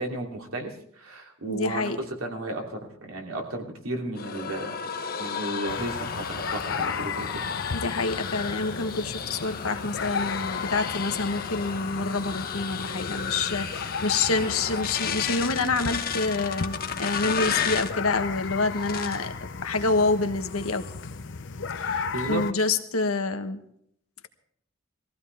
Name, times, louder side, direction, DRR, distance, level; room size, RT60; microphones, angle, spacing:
voice 1, 0.0-4.8 5.2-7.3 22.1-22.4, right 1 dB, 75° right, 1 dB, 3.1 m, -33 dB
voice 2, 1.5-2.0 7.7-19.3 19.6-20.8 21.7-23.6, left 3 dB, 85° left, 8 dB, 1.3 m, -27 dB
sound 1, 4.2-18.0 18.7-19.3 19.7-20.1 20.4-21.1, left 7 dB, 45° left, 1.2 m, -33 dB
sound 2, 5.7-22.5, left 5 dB, 60° left, 0.8 m, -35 dB
20.5 x 15.5 x 3.5 m, 0.68 s
head